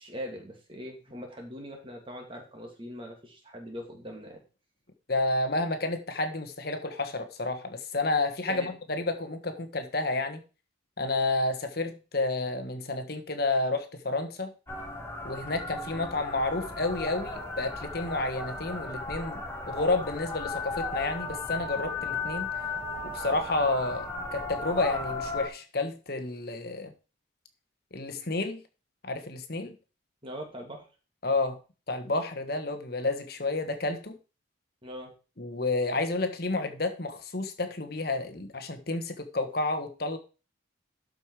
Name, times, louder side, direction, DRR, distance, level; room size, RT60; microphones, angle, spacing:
voice 1, 0.0-4.4 8.5-8.7 30.2-30.8 34.8-35.1, equal, 25° right, 2.4 m, -41 dB
voice 2, 5.1-10.4 11.0-14.5 15.2-22.5 23.1-26.9 27.9-28.6 29.0-29.7 31.2-31.6 31.9-34.1 35.4-40.2, left 2 dB, 50° left, 1.3 m, -30 dB
sound 1, 14.7-25.5, left 3 dB, 15° left, 1.4 m, -35 dB
12.5 x 5.3 x 4.8 m
head